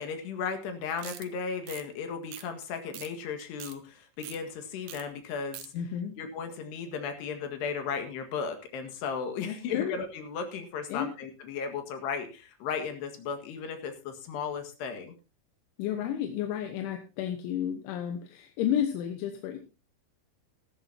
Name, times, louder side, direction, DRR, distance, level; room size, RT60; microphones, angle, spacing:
voice 1, 0.0-5.7 6.2-15.1, left 6 dB, 70° left, 6 dB, 3.7 m, -35 dB
sound 1, 1.0-1.3 1.6-1.8 2.3-2.6 2.9-3.1 3.4-3.8 4.2-4.4 4.9-5.0 5.3-5.7, right 13 dB, 75° right, 3.1 m, -42 dB
voice 2, 5.7-6.2 9.4-10.0 10.9-11.1 15.8-19.6, left 9 dB, 85° left, 5 dB, 3.6 m, -32 dB
17.0 x 13.0 x 2.8 m, 0.30 s
omnidirectional pair, 5.3 m